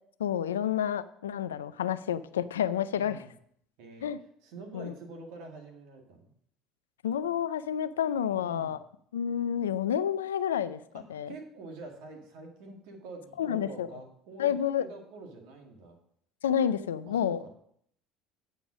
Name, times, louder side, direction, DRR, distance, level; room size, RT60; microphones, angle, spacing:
voice 1, 0.2-3.2 4.0-4.2 4.7-4.9 7.0-8.8 9.1-10.8 11.1-11.3 13.4-13.9 14.4-14.9 16.4-17.4, left 9 dB, 90° left, 15 dB, 0.4 m, -29 dB
voice 2, 2.9-3.3 3.8-4.1 4.4-6.3 8.4-8.8 10.9-16.0 17.1-17.5, right 3 dB, 70° right, 2 dB, 2.0 m, -46 dB
8.8 x 5.3 x 6.1 m, 0.67 s
hypercardioid pair, 70°, 0 cm